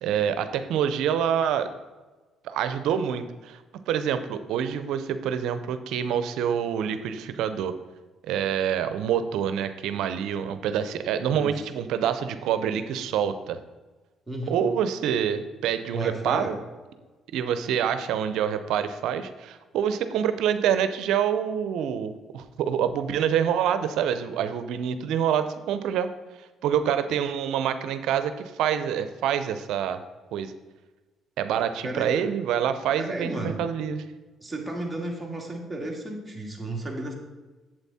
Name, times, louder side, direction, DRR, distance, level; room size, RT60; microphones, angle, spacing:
voice 1, 0.0-1.7 2.4-7.7 8.2-13.6 14.5-16.6 17.3-26.1 26.4-30.0 30.3-30.5 31.4-34.0, right 8 dB, 80° right, 11 dB, 0.7 m, -26 dB
voice 2, 14.3-14.6 15.9-16.5 31.8-32.1 33.0-33.6 34.4-37.1, right 1 dB, 10° right, -1 dB, 2.4 m, -33 dB
8.1 x 7.7 x 4.2 m, 1.2 s
supercardioid pair, 75°, 0 cm